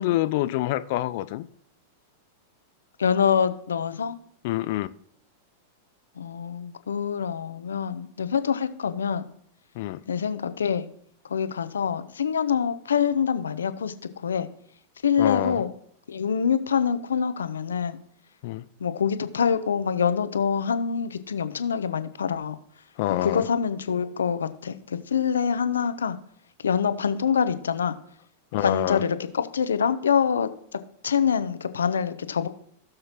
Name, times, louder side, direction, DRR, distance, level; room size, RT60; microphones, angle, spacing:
voice 1, 0.0-1.5 4.4-4.9 9.8-10.0 15.2-15.6 18.4-18.6 23.0-23.5 28.5-29.0, left 15 dB, 55° left, 14 dB, 0.4 m, -26 dB
voice 2, 3.0-4.2 6.2-9.3 10.1-10.9 11.3-13.9 14.2-14.5 15.0-15.7 16.1-18.0 18.8-22.6 23.1-26.2 26.6-27.9 28.6-30.5 31.0-32.5, left 7 dB, 80° left, 12 dB, 0.7 m, -25 dB
16.5 x 6.5 x 3.0 m, 0.65 s
hypercardioid pair, 95°, 0 cm